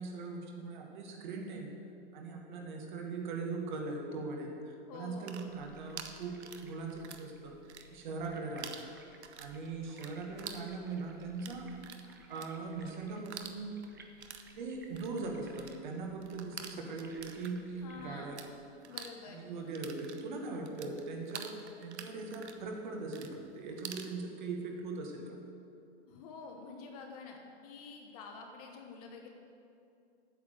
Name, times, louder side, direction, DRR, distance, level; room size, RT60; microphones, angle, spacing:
voice 1, 0.0-1.7 2.1-7.6 7.9-8.9 9.4-11.7 12.3-13.7 14.6-18.4 19.2-25.4, right 3 dB, 45° right, 2 dB, 1.6 m, -40 dB
voice 2, 4.9-5.4 17.8-18.4 18.9-19.5 26.1-29.3, left 4 dB, 35° left, 2 dB, 1.2 m, -48 dB
sound 1, 5.0-7.3 7.6-8.3 8.6-18.5 18.8-24.1, right 7 dB, 70° right, 1.0 m, -48 dB
sound 2, 5.5-18.5, right 2 dB, 20° right, 0.3 m, -59 dB
8.8 x 7.1 x 7.7 m, 2.5 s
hypercardioid pair, 155°, 35 cm